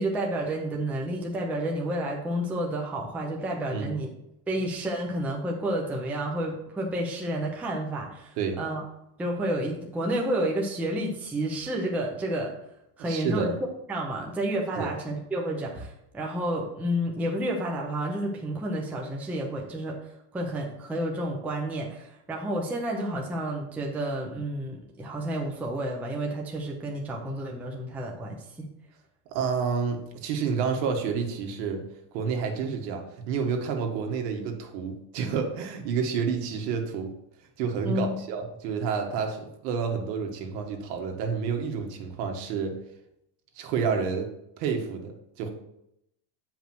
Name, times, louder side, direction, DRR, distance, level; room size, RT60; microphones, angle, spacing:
voice 1, 0.0-4.1 4.5-8.8 9.2-12.5 13.0-13.6 13.9-20.0 20.3-28.7 37.8-38.2, right 1 dB, 5° right, -1 dB, 0.4 m, -30 dB
voice 2, 13.0-13.6 14.8-14.9 29.3-31.8 32.1-37.1 37.6-42.7 43.5-44.3 44.6-45.5, right 6 dB, 80° right, 3 dB, 1.7 m, -29 dB
7.8 x 5.2 x 4.5 m, 0.81 s
cardioid pair, 165°, 50 cm